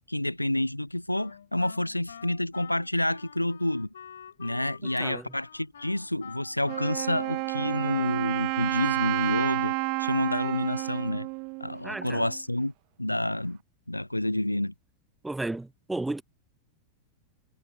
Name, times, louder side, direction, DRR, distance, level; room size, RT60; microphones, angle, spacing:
voice 1, 0.1-3.9 4.4-11.3 11.6-12.7 13.0-13.6 13.9-14.7, left 1 dB, 85° left, 1.2 m, -29 dB
Wind instrument woodwind instrument, 1.1-8.5, left 8 dB, 65° left, 4.7 m, -48 dB
voice 2, 5.0-5.3 11.8-12.3 15.2-16.2, right 2 dB, 5° right, 0.9 m, -33 dB
Wind instrument woodwind instrument 2, 6.7-12.4, right 33 dB, 45° right, 0.4 m, -31 dB
figure-of-eight pair, 90°, 0 cm